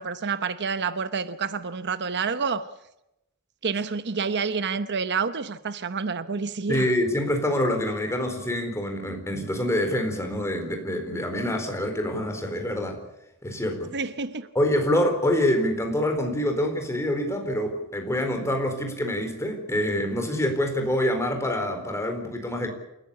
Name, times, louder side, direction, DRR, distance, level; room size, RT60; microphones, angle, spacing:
voice 1, 0.0-2.7 3.6-6.9 13.9-14.5, right 5 dB, 55° right, 0.9 m, -28 dB
voice 2, 6.7-13.0 13.4-13.9 14.5-22.7, left 1 dB, 15° left, 4.2 m, -26 dB
28.5 x 14.5 x 8.4 m
head